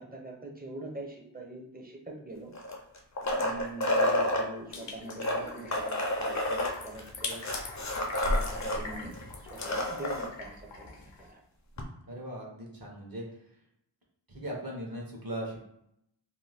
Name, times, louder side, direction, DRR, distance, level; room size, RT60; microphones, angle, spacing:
voice 1, 0.0-2.5 3.3-7.4 8.2-11.4, right 2 dB, 20° right, -1 dB, 0.6 m, -43 dB
sound 1, 2.5-4.4 5.1-8.8 9.1-9.2 9.5-10.3 11.8-11.9, left 1 dB, 40° left, 0.5 m, -29 dB
sound 2, 4.7-11.3, left 3 dB, 75° left, 0.7 m, -43 dB
voice 2, 12.1-13.2 14.3-15.6, right 1 dB, 50° right, -1 dB, 0.9 m, -38 dB
2.6 x 2.2 x 3.3 m, 0.76 s
wide cardioid pair, 60°, 44 cm